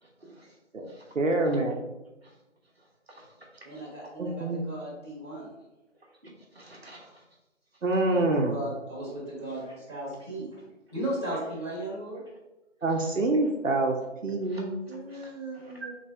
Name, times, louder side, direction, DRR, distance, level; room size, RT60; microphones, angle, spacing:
voice 1, 0.0-0.5 0.9-1.1 2.2-2.3 2.8-3.8 6.5-7.2 13.0-13.1 14.4-15.7, right 1 dB, 55° right, -2 dB, 1.1 m, -53 dB
voice 2, 1.1-1.8 4.2-4.6 7.8-8.6 12.8-14.0 14.2-14.7, right 2 dB, 85° right, 2 dB, 0.8 m, -26 dB
voice 3, 3.6-5.5 8.1-8.2 8.5-10.5 10.9-12.2 14.9-15.9, right 1 dB, 20° right, -10 dB, 1.4 m, -36 dB
4.0 x 3.3 x 3.3 m, 1.0 s
figure-of-eight pair, 170°, 37 cm